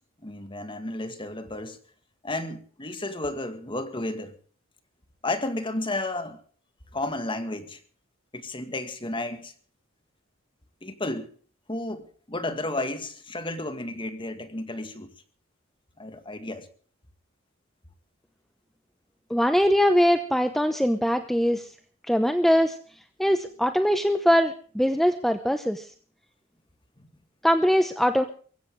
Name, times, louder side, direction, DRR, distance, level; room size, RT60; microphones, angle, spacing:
voice 1, 0.2-1.8 2.2-4.3 5.2-6.4 6.9-7.8 8.3-9.5 10.8-11.3 11.7-15.1 16.0-16.7 27.0-27.1, left 2 dB, 25° left, 2.0 m, -32 dB
voice 2, 19.3-21.7 22.1-22.8 23.2-25.9 27.4-28.2, equal, ahead, 0.9 m, -22 dB
23.0 x 15.5 x 3.7 m
head